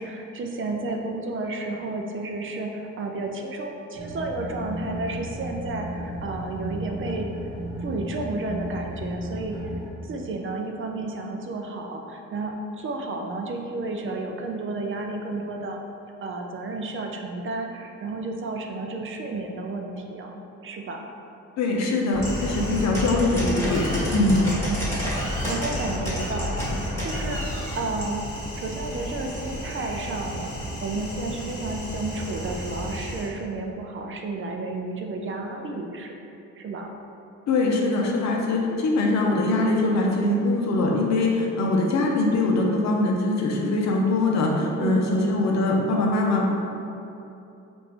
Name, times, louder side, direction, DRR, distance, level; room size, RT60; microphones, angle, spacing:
voice 1, 0.0-7.3 7.8-9.6 10.0-15.8 16.2-21.0 24.1-24.7 25.2-28.2 28.6-36.2 36.6-36.9 40.2-40.6 44.8-45.4, right 2 dB, 45° right, 2 dB, 0.4 m, -32 dB
sound 1, 3.9-9.9, equal, 25° right, 1.2 m, -34 dB
voice 2, 21.6-24.4 37.5-46.5, left 2 dB, 65° left, 0 dB, 0.7 m, -22 dB
sound 2, 22.1-33.3, equal, 10° left, 1.4 m, -30 dB
4.3 x 2.6 x 3.2 m, 2.8 s
cardioid pair, 90°, 30 cm